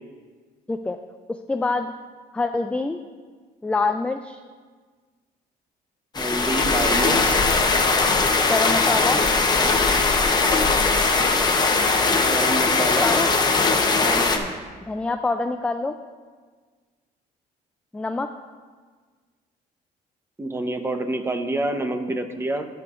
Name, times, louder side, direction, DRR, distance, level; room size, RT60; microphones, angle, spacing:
voice 1, 0.7-1.0 1.3-1.9 2.3-3.0 3.6-4.4 8.5-9.2 13.0-13.3 14.3-14.5 14.9-16.0 17.9-18.3, left 3 dB, 5° left, 7 dB, 0.3 m, -25 dB
sound 1, 6.1-14.4, left 3 dB, 25° left, 0.9 m, -20 dB
voice 2, 6.2-7.4 12.1-13.2 14.0-14.3 20.4-22.7, right 2 dB, 15° right, 7 dB, 0.8 m, -27 dB
17.5 x 6.9 x 2.5 m, 1.5 s
cardioid pair, 110°, 17 cm